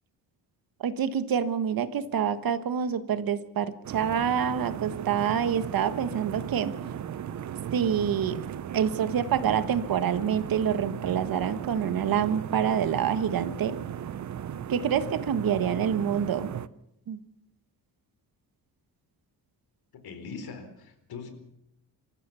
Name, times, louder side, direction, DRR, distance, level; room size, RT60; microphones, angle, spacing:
voice 1, 0.8-6.7 7.7-8.4 8.7-13.8 14.7-16.5 17.1-17.2, right 8 dB, 60° right, 12 dB, 1.5 m, -27 dB
sound 1, 3.8-16.7, right 9 dB, 45° right, 0.8 m, -36 dB
voice 2, 19.9-21.3, left 5 dB, 65° left, 8 dB, 4.3 m, -41 dB
26.5 x 14.5 x 7.0 m, 0.79 s
cardioid pair, 140°, 39 cm